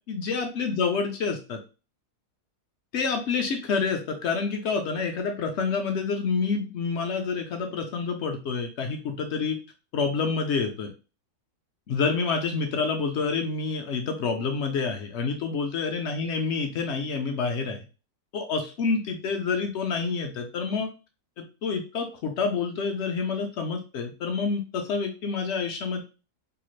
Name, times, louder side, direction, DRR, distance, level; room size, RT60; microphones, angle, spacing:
voice 1, 0.1-1.6 2.9-9.6 9.9-10.9 11.9-17.8 18.3-20.9 21.4-26.0, left 5 dB, 70° left, 4 dB, 0.6 m, -28 dB
2.8 x 2.4 x 3.1 m, 0.32 s
omnidirectional pair, 1.7 m